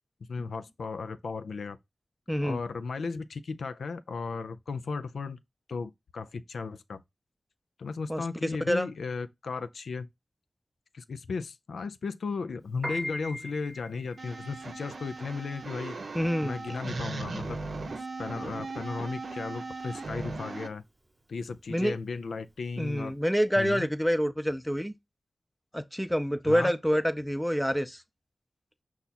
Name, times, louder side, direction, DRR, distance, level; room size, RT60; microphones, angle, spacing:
voice 1, 0.3-1.8 2.4-5.4 5.7-7.0 7.8-10.1 10.9-16.0 16.4-17.6 18.2-20.8 21.3-23.1 23.6-23.9 26.5-26.7, left 4 dB, 85° left, 0.4 m, -35 dB
voice 2, 2.3-2.6 8.1-8.9 16.1-16.6 21.7-22.0 22.8-24.9 25.7-28.0, equal, 5° left, 0.6 m, -27 dB
Piano, 12.7-23.1, equal, 30° right, 0.9 m, -42 dB
sound 1, 14.2-20.7, right 3 dB, 75° right, 0.6 m, -38 dB
5.5 x 2.4 x 4.1 m
cardioid pair, 45°, 0 cm